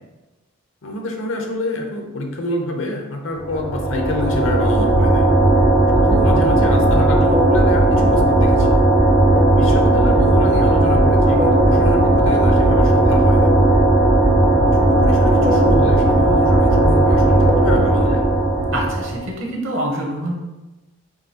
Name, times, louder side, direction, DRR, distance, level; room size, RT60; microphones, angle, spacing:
voice 1, 0.8-5.3 5.9-8.7 9.5-13.5 14.7-18.2, left 1 dB, 65° left, 2 dB, 0.7 m, -26 dB
sound 1, 3.4-19.3, right 1 dB, 10° right, 0.3 m, -15 dB
voice 2, 18.7-20.3, right 1 dB, 65° right, -1 dB, 0.9 m, -25 dB
4.8 x 2.7 x 2.8 m, 1.1 s
head